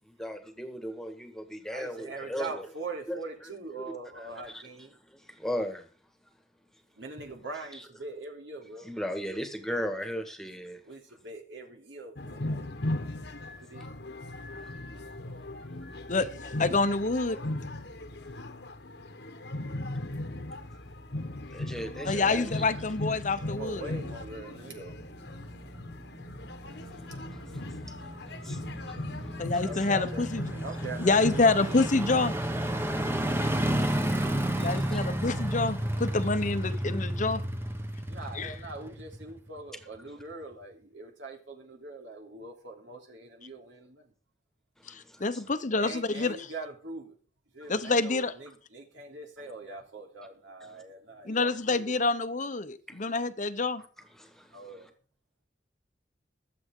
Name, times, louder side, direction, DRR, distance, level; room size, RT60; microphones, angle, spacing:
voice 1, 0.0-2.6 3.1-3.2 3.7-3.8 4.4-4.6 5.1-5.9 7.7-7.8 8.8-10.8 14.6-14.7 21.5-22.6 26.8-28.1 28.4-29.0 29.4-29.5 33.7-35.0 44.8-45.4 52.9-53.1 54.2-54.6, equal, ahead, 1.6 m, -38 dB
voice 2, 1.7-5.0 6.9-8.9 10.8-12.7 13.6-13.8 23.6-25.0 29.5-30.2 30.5-31.7 33.4-33.6 38.1-44.1 45.8-47.2 47.5-52.0 54.5-54.9, right 3 dB, 80° right, 3.2 m, -42 dB
sound 1, 12.2-31.9, left 1 dB, 65° left, 1.2 m, -38 dB
voice 3, 16.1-17.4 22.0-23.9 29.4-30.4 31.0-32.3 34.6-37.4 38.3-38.5 44.9-46.5 47.7-48.3 51.3-53.8, left 3 dB, 45° left, 0.9 m, -27 dB
sound 2, 23.0-39.6 40.0-40.1, right 1 dB, 15° right, 1.1 m, -33 dB
21.5 x 7.7 x 3.8 m
head